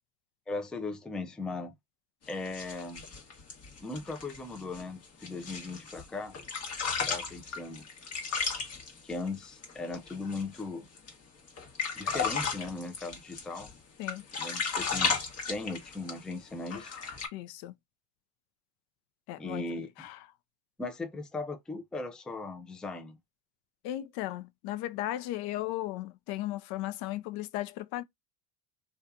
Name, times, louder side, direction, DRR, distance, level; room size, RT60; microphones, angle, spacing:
voice 1, 0.5-1.7 2.3-3.1 3.8-6.4 7.1-7.9 9.0-10.9 12.0-13.7 14.4-15.2 15.5-17.0 19.4-19.9 20.8-23.2, left 3 dB, ahead, 0.3 m, -38 dB
sound 1, 2.3-6.1 6.3-10.6 11.0-11.1 11.5-13.7 14.0-16.3 16.7-17.3, left 5 dB, 35° left, 1.0 m, -34 dB
voice 2, 17.3-17.7 19.3-19.7 20.0-20.2 23.8-28.0, left 15 dB, 65° left, 0.5 m, -36 dB
2.7 x 2.3 x 2.3 m
supercardioid pair, 105°, 41 cm